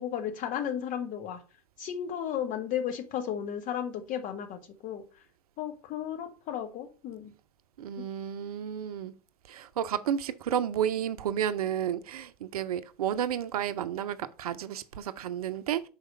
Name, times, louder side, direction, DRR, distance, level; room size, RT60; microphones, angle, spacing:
voice 1, 0.0-1.4 1.8-5.0 5.6-7.3 7.9-8.0, left 9 dB, 40° left, 1.4 m, -34 dB
voice 2, 7.8-9.1 9.5-15.9, right 9 dB, 70° right, 0.6 m, -31 dB
5.7 x 4.8 x 5.4 m
figure-of-eight pair, 80°, 20 cm